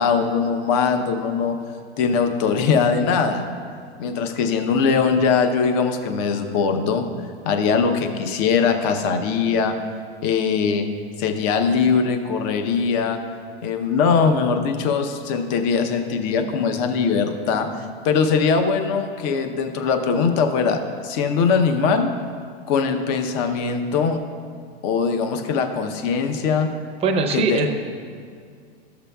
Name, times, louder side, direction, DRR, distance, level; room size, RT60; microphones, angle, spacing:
voice 1, 0.0-1.6 2.0-3.5 4.0-7.1 7.5-9.8 10.2-10.9 11.2-13.2 13.6-17.7 18.0-22.1 22.7-24.2 24.8-26.7 27.3-27.8, left 5 dB, 40° left, 6 dB, 0.7 m, -21 dB
voice 2, 27.0-27.8, right 4 dB, 20° right, 3 dB, 0.6 m, -21 dB
13.5 x 6.9 x 2.2 m, 2.2 s
hypercardioid pair, 135°, 31 cm